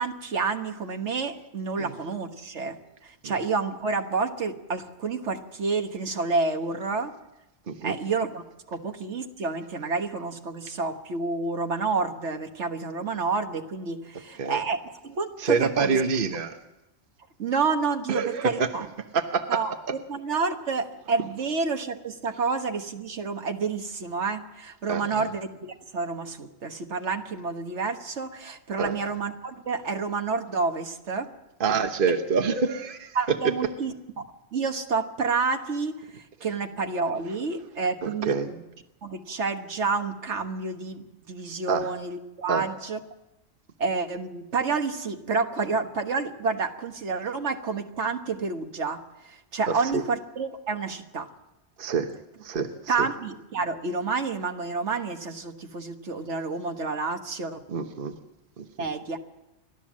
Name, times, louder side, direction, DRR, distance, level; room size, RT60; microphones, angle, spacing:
voice 1, 0.0-7.1 7.8-16.0 17.4-18.9 19.5-19.7 20.1-31.3 33.1-38.6 39.0-43.0 43.8-51.3 52.9-57.6 58.8-59.2, right 4 dB, 70° right, 6 dB, 1.6 m, -29 dB
voice 2, 15.4-16.6 18.1-18.7 19.1-19.6 24.9-25.2 28.8-28.9 31.6-33.4 38.0-38.5 41.7-41.9 42.5-42.6 49.7-50.0 51.8-52.1 52.4-52.7 53.0-53.1 57.7-58.1 58.6-58.7, right 5 dB, 50° right, 6 dB, 1.2 m, -26 dB
29.5 x 12.5 x 7.4 m, 0.96 s
omnidirectional pair, 1.2 m